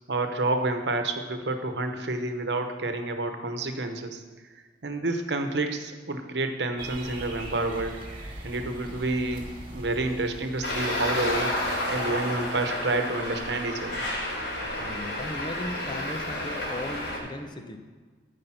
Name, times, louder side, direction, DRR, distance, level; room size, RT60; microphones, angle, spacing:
voice 1, 0.1-4.2 4.8-8.0 8.4-11.6 11.9-14.0, right 2 dB, 80° right, 6 dB, 1.0 m, -29 dB
sound 1, 6.8-12.3, right 1 dB, 30° right, 1.9 m, -42 dB
Traffic noise roadway noise, 10.6-17.2, left 1 dB, 80° left, 3.2 m, -31 dB
voice 2, 14.8-17.8, left 1 dB, 25° left, 6 dB, 0.8 m, -37 dB
14.0 x 5.3 x 5.8 m, 1.4 s
head